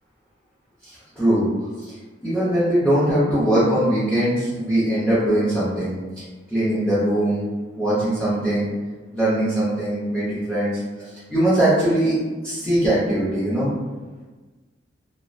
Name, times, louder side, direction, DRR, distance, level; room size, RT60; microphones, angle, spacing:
voice 1, 0.8-1.5 1.8-1.9 2.2-5.9 6.5-7.4 7.8-8.7 9.1-10.7 11.3-12.2 12.4-13.7, right 1 dB, 5° left, -11 dB, 0.6 m, -21 dB
2.3 x 2.1 x 2.6 m, 1.3 s
head